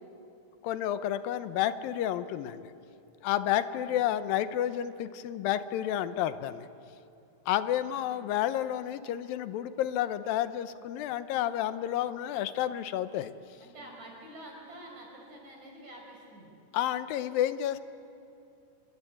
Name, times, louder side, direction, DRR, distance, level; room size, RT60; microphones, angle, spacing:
voice 1, 0.6-2.7 3.2-6.7 7.5-13.3 16.7-17.8, left 11 dB, 90° left, 12 dB, 2.6 m, -30 dB
voice 2, 3.3-3.9 7.9-8.3 13.6-16.5, right 1 dB, 55° right, 0 dB, 6.9 m, -49 dB
27.0 x 23.5 x 8.7 m, 2.7 s
omnidirectional pair, 4.0 m